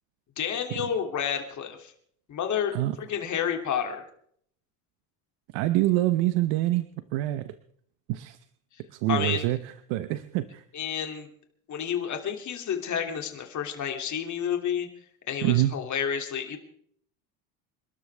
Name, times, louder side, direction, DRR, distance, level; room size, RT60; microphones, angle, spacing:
voice 1, 0.4-1.9 2.3-4.0 9.1-9.5 10.7-11.3 11.7-14.9 15.3-16.6, left 8 dB, 40° left, 4 dB, 2.9 m, -30 dB
voice 2, 5.5-7.5 8.1-8.4 8.9-10.6 15.4-15.7, right 15 dB, 70° right, 11 dB, 1.1 m, -26 dB
28.0 x 12.5 x 3.5 m, 0.64 s
cardioid pair, 135°, 46 cm